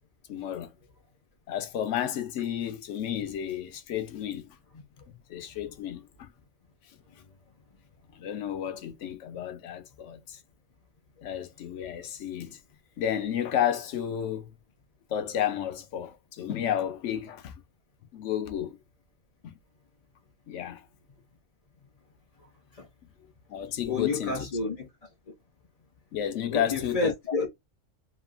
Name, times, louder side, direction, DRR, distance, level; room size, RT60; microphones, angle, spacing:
voice 1, 0.3-0.7 1.5-4.6 5.1-6.3 8.1-10.4 11.2-12.6 13.0-14.5 15.1-17.5 18.1-18.8 19.4-19.6 20.5-20.9 23.5-24.5 26.1-27.1, left 10 dB, 70° left, 0.8 m, -32 dB
voice 2, 23.9-24.9 26.5-27.5, left 3 dB, 45° left, 0.5 m, -29 dB
3.0 x 2.4 x 2.4 m
omnidirectional pair, 1.4 m